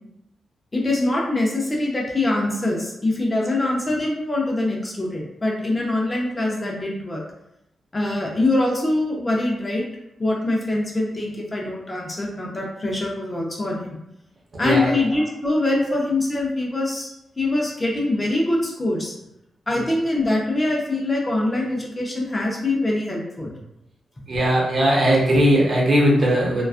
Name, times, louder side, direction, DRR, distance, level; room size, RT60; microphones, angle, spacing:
voice 1, 0.7-7.2 7.9-9.8 10.2-14.0 14.6-19.1 19.7-23.5, left 2 dB, 25° left, -2 dB, 0.5 m, -23 dB
voice 2, 24.3-26.7, equal, 50° right, -4 dB, 0.8 m, -18 dB
2.4 x 2.3 x 2.4 m, 0.85 s
cardioid pair, 100°, 0 cm